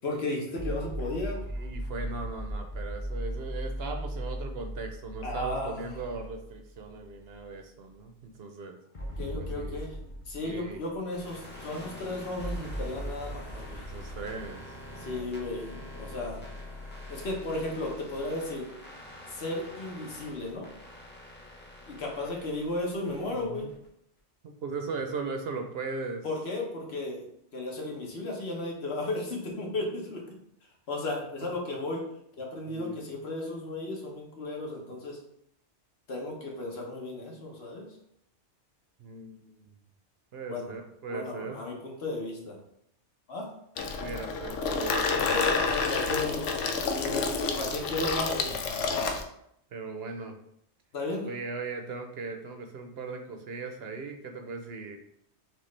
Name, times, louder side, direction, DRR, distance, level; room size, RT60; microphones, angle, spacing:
voice 1, 0.0-1.4 5.2-6.0 9.0-9.9 10.3-13.9 15.0-16.4 17.1-18.7 19.3-20.7 21.9-23.7 26.2-27.3 27.5-30.2 30.9-32.1 32.4-35.2 36.1-37.8 40.5-40.7 41.1-42.6 43.3-43.5 45.2-46.5 47.0-48.5 50.9-51.3, left 2 dB, 65° left, 0 dB, 1.2 m, -34 dB
sound 1, 0.6-6.9 7.3-7.4 8.9-11.4 12.4-15.1, equal, 35° left, 0.7 m, -37 dB
voice 2, 1.5-8.8 9.4-9.8 10.4-10.8 13.5-15.4 23.3-23.7 24.4-26.3 32.7-33.0 39.0-39.7 40.3-41.6 44.0-45.3 49.7-50.4 51.2-55.0, right 4 dB, 65° right, 4 dB, 0.8 m, -38 dB
sound 2, 11.1-23.9, left 1 dB, 10° left, 1.0 m, -45 dB
Water tap faucet / Sink (filling or washing), 43.8-49.2, left 4 dB, 90° left, 0.9 m, -29 dB
6.0 x 2.4 x 3.2 m, 0.73 s
omnidirectional pair, 1.2 m